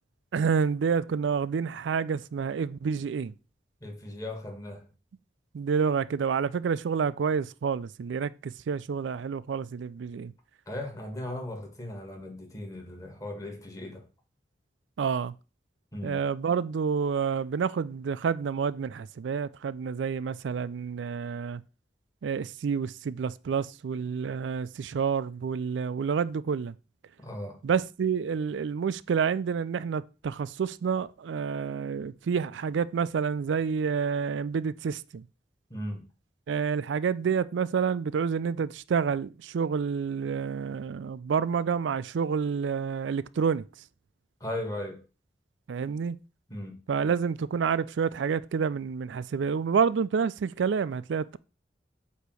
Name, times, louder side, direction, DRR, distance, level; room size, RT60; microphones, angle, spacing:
voice 1, 0.3-3.3 5.5-10.3 15.0-15.3 16.0-21.6 22.2-26.8 27.6-35.2 36.5-43.7 45.7-46.2 46.9-51.4, right 6 dB, 90° right, 0.4 m, -28 dB
voice 2, 3.8-4.9 10.7-14.0 15.9-16.2 27.2-27.6 35.7-36.0 44.4-45.0 46.5-46.8, left 1 dB, 20° left, 1.6 m, -37 dB
8.2 x 2.8 x 6.2 m
head